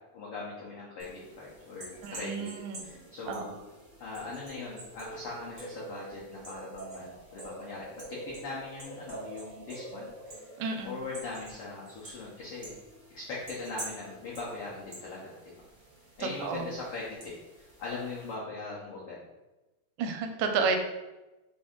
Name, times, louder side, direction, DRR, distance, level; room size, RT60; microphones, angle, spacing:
voice 1, 0.1-2.5 2.8-3.6 4.0-10.5 10.8-12.7 13.1-15.5 16.2-19.2, left 3 dB, 80° left, -5 dB, 1.3 m, -40 dB
sound 1, 1.0-18.3, right 2 dB, 65° right, 0.7 m, -47 dB
voice 2, 2.0-2.8 3.3-3.4 10.6-10.9 16.2-16.7 20.0-20.8, right 5 dB, 85° right, 5 dB, 2.1 m, -31 dB
5.1 x 2.6 x 3.6 m, 1.1 s
omnidirectional pair, 3.5 m